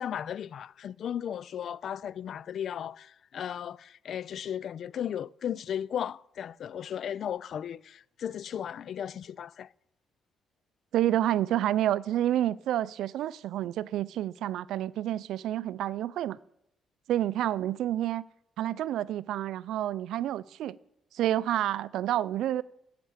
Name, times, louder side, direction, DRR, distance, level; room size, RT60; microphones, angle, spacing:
voice 1, 0.0-9.7, left 9 dB, 65° left, 0.3 m, -35 dB
voice 2, 10.9-16.4 17.1-18.3 18.6-20.8 21.1-22.6, right 12 dB, 80° right, 0.3 m, -29 dB
10.0 x 6.0 x 8.6 m
cardioid pair, 75°, 0 cm